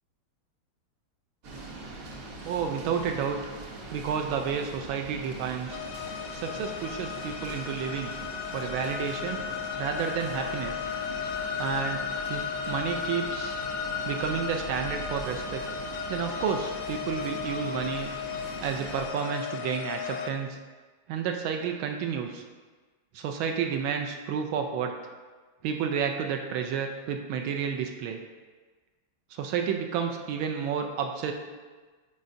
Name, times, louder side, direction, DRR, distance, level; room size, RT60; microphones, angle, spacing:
sound 1, 1.4-19.1, right 2 dB, 55° right, 1.1 m, -42 dB
voice 1, 2.4-3.5 3.9-5.8 6.3-8.1 8.5-9.4 9.8-10.9 11.6-12.0 12.3-13.6 14.0-15.6 16.1-18.1 18.6-20.6 21.1-22.4 23.1-24.9 25.6-28.2 29.3-31.3, right 7 dB, 80° right, 4 dB, 1.4 m, -31 dB
sound 2, 5.7-20.3, left 7 dB, 85° left, 1.4 m, -35 dB
9.4 x 4.3 x 2.6 m, 1.4 s
omnidirectional pair, 2.2 m